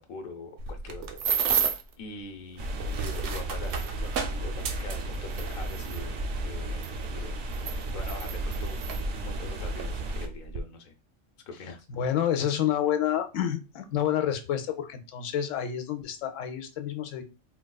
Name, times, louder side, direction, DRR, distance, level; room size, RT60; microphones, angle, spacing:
voice 1, 0.0-1.6 2.0-4.1 4.4-7.4 7.9-10.9 11.5-11.9, left 3 dB, 55° left, 5 dB, 0.7 m, -43 dB
sound 1, 0.6-1.9 2.7-6.0 6.8-6.9 7.5-9.0 9.8-9.9 10.3-10.6, right 7 dB, 80° right, 0.9 m, -31 dB
sound 2, 2.6-10.3, right 1 dB, 60° right, 0.5 m, -33 dB
voice 2, 12.0-17.2, left 10 dB, 85° left, 7 dB, 0.9 m, -28 dB
4.1 x 2.3 x 2.2 m, 0.30 s
omnidirectional pair, 1.3 m